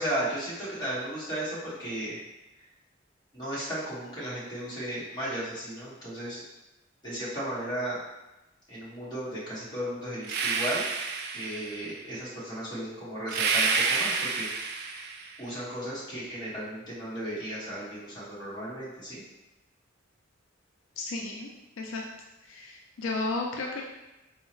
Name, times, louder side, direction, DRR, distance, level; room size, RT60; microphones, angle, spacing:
voice 1, 0.0-2.2 3.3-6.4 7.0-8.0 8.7-10.8 11.3-14.5 15.4-19.2, right 1 dB, 20° left, -9 dB, 1.4 m, -35 dB
sound 1, 10.2-11.9 13.3-15.4, right 4 dB, 55° right, 0.3 m, -29 dB
voice 2, 21.0-21.5 21.8-22.0 22.5-23.8, left 3 dB, 80° left, 0 dB, 0.4 m, -33 dB
4.5 x 2.1 x 3.0 m, 0.98 s
head